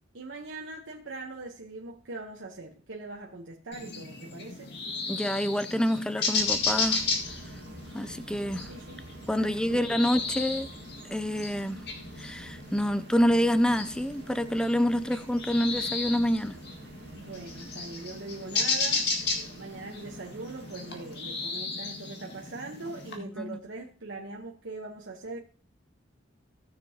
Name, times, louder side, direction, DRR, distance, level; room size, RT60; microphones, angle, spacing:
voice 1, 0.1-4.7 8.5-9.1 9.4-9.9 17.1-19.1 19.6-25.4, right 3 dB, 85° right, 1.0 m, -41 dB
sound 1, 3.7-23.2, left 4 dB, 60° left, 1.9 m, -34 dB
voice 2, 5.1-7.0 7.9-8.7 9.3-10.7 11.1-11.8 12.2-16.6 23.2-23.6, equal, 5° left, 0.4 m, -27 dB
Subway metro underground, 6.3-21.7, right 2 dB, 60° right, 1.1 m, -49 dB
17.0 x 6.8 x 2.8 m
head